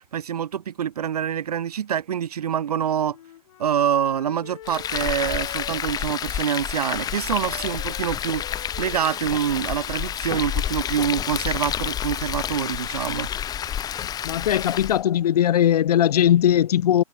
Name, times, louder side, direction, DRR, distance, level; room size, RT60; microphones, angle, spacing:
voice 1, 0.0-3.2 3.6-13.3, right 9 dB, 85° right, 0.6 m, -26 dB
Wind instrument woodwind instrument, 3.0-10.7, left 12 dB, 60° left, 6.0 m, -45 dB
Frying (food), 4.6-15.0, left 10 dB, 20° left, 1.9 m, -29 dB
voice 2, 14.2-17.0, left 11 dB, 80° left, 0.4 m, -19 dB
hypercardioid pair, 130°, 19 cm